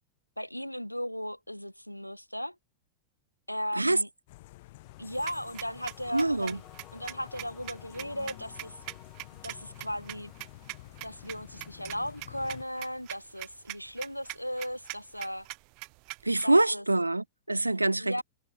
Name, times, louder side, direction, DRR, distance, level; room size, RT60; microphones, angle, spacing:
voice 1, 0.4-2.6 3.5-4.1 5.0-6.6 6.9-8.8 9.4-10.3 11.0-15.5 16.4-16.8 18.0-18.2, equal, 90° left, 1.2 m, -36 dB
sound 1, 4.3-12.6, left 20 dB, 50° left, 2.2 m, -50 dB
sound 2, 4.8-10.9, left 13 dB, 35° left, 7.7 m, -57 dB
sound 3, 5.1-16.4, right 39 dB, 45° right, 4.3 m, -43 dB
voice 2, 6.1-6.6 16.2-18.2, right 2 dB, 85° right, 0.5 m, -25 dB
figure-of-eight pair, 90°, 0 cm